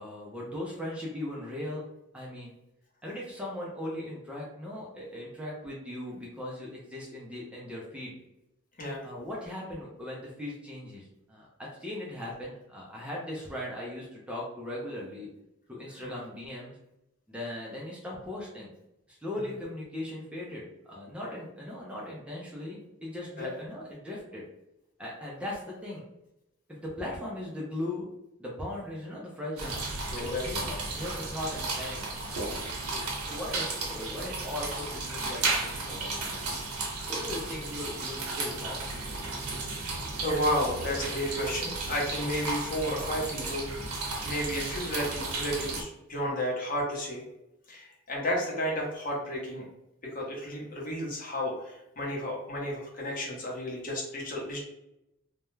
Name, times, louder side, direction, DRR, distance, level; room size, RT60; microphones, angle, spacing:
voice 1, 0.0-1.8 2.1-2.5 3.0-8.2 9.0-15.3 15.7-16.8 17.3-18.7 19.1-24.4 25.0-26.1 26.7-28.1 28.4-32.4 32.9-36.4 37.1-39.1, left 1 dB, 5° right, -5 dB, 0.4 m, -38 dB
sound 1, 29.6-45.8, right 3 dB, 85° right, 0.7 m, -34 dB
voice 2, 30.2-30.6 40.2-43.7 44.2-47.2 47.7-49.6 50.1-54.6, equal, 40° left, -2 dB, 0.7 m, -32 dB
2.2 x 2.0 x 3.0 m, 0.85 s
head